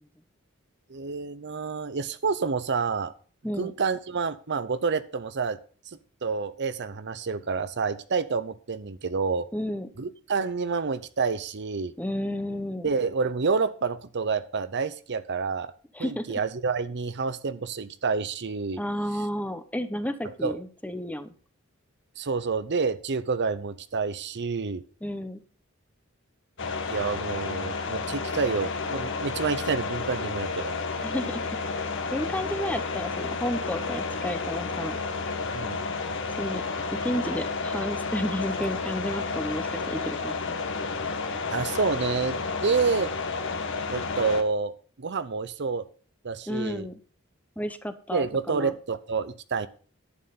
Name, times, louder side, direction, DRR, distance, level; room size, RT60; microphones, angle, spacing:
voice 1, 0.9-3.1 3.6-5.6 5.9-9.5 10.0-11.9 12.8-15.7 16.0-18.8 20.2-20.6 22.2-24.8 26.9-30.7 35.5-35.8 41.5-43.1 43.9-45.9 46.2-46.9 48.1-49.7, right 4 dB, 55° right, 13 dB, 0.7 m, -28 dB
voice 2, 9.5-9.9 12.0-12.9 15.9-16.2 18.8-21.3 25.0-25.4 31.0-31.4 32.1-35.0 36.4-36.6 36.9-40.6 46.5-46.9 47.6-48.7, left 1 dB, 5° left, 10 dB, 0.9 m, -32 dB
sound 1, 26.6-44.4, left 4 dB, 60° left, 1.6 m, -31 dB
11.5 x 9.1 x 4.1 m, 0.40 s
head